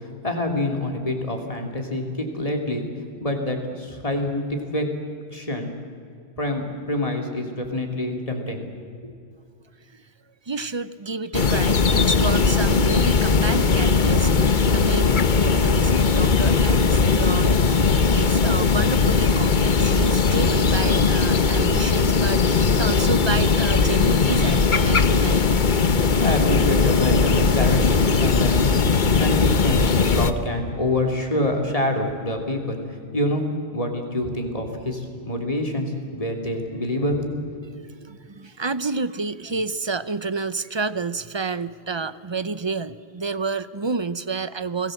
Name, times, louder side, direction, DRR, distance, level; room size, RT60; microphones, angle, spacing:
voice 1, 0.2-2.0 2.3-2.8 3.2-4.8 5.3-5.7 6.4-8.6 9.0-9.1 26.2-28.9 29.2-32.8 33.1-33.4 33.7-37.3 37.6-37.7, left 1 dB, 35° left, 3 dB, 3.1 m, -26 dB
voice 2, 10.5-25.6 38.0-44.9, right 4 dB, 30° right, 15 dB, 0.6 m, -30 dB
sound 1, 11.3-30.3, left 4 dB, 50° left, 1.1 m, -19 dB
29.5 x 19.0 x 7.9 m, 2.4 s
omnidirectional pair, 1.1 m